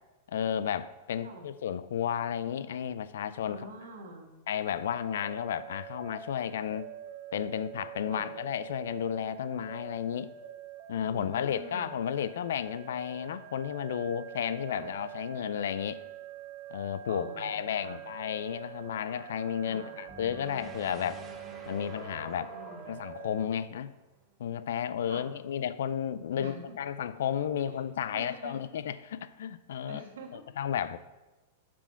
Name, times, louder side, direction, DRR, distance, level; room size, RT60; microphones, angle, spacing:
voice 1, 0.3-3.7 4.5-6.9 7.3-10.3 10.9-16.0 16.7-21.2 21.7-22.5 22.9-23.9 24.4-30.0 30.6-31.0, left 9 dB, 75° left, 0.4 m, -33 dB
voice 2, 3.5-4.3 8.1-8.3 11.1-12.0 14.7-14.9 17.1-18.0 19.7-20.0 22.5-23.2 25.0-25.3 26.4-26.8 27.7-27.8 28.1-28.6 29.9-30.4, right 2 dB, 80° right, 1.5 m, -46 dB
sound 1, 4.8-23.5, right 11 dB, 50° right, 0.7 m, -46 dB
sound 2, 18.1-23.2, left 4 dB, 50° left, 2.1 m, -53 dB
sound 3, 20.1-24.3, right 3 dB, 25° right, 0.9 m, -50 dB
7.1 x 5.0 x 5.7 m
hypercardioid pair, 125°, 0 cm